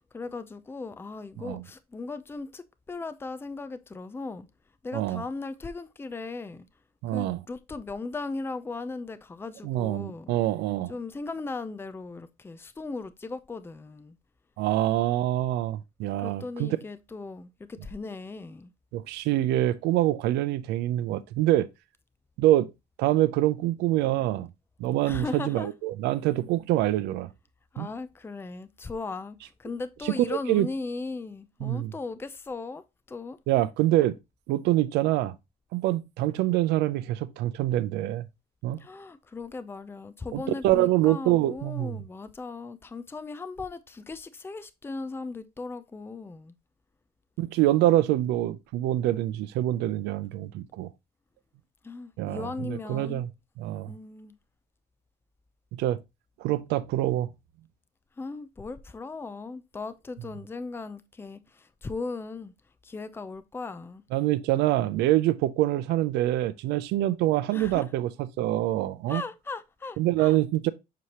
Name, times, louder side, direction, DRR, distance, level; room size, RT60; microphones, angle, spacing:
voice 1, 0.1-4.5 4.8-6.7 7.1-10.4 10.9-14.1 16.2-18.7 25.0-25.7 27.7-32.8 33.1-33.4 38.8-46.5 51.8-53.2 53.9-54.3 58.2-62.5 62.8-64.0 67.5-67.9 69.1-70.4, left 3 dB, 15° left, 0.5 m, -37 dB
voice 2, 4.9-5.2 7.0-7.4 9.6-10.9 14.6-16.8 18.9-21.7 22.4-22.7 23.0-24.5 24.8-27.3 27.8-27.9 30.0-30.1 30.5-30.7 31.6-31.9 33.5-34.1 34.5-35.3 35.7-38.2 38.6-38.8 40.3-42.0 47.4-50.9 52.2-53.3 53.6-53.9 55.7-56.0 56.4-57.3 64.1-69.2 70.0-70.7, right 14 dB, 85° right, 0.5 m, -25 dB
6.9 x 4.7 x 2.9 m
cardioid pair, 110°, 17 cm